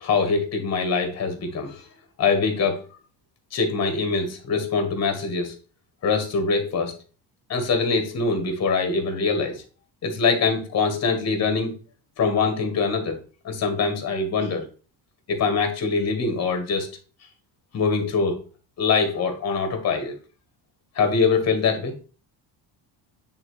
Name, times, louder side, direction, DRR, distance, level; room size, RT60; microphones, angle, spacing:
voice 1, 0.0-1.9 2.2-2.8 3.5-5.5 6.0-6.9 7.5-9.6 10.0-11.7 12.2-13.2 13.4-14.7 15.3-16.9 17.7-18.4 18.8-20.1 20.9-22.0, left 4 dB, 35° left, 6 dB, 1.4 m, -23 dB
8.9 x 3.7 x 3.1 m, 0.36 s
cardioid pair, 170°, 43 cm